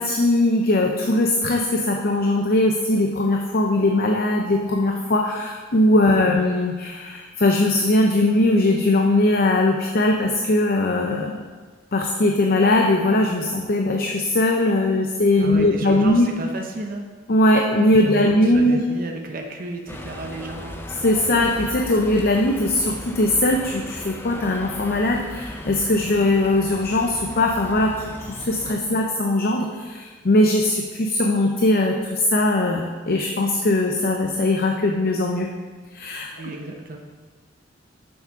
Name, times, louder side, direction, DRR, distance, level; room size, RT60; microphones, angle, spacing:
voice 1, 0.0-11.4 11.9-16.3 17.3-18.8 21.0-35.5 35.9-36.3, left 1 dB, 55° left, 2 dB, 0.7 m, -20 dB
voice 2, 15.4-17.0 17.9-20.8 28.8-29.0 36.3-37.0, right 2 dB, 50° right, 2 dB, 0.8 m, -33 dB
sound 1, 19.9-28.8, left 1 dB, 10° left, 0.6 m, -37 dB
7.1 x 6.4 x 5.7 m, 1.4 s
head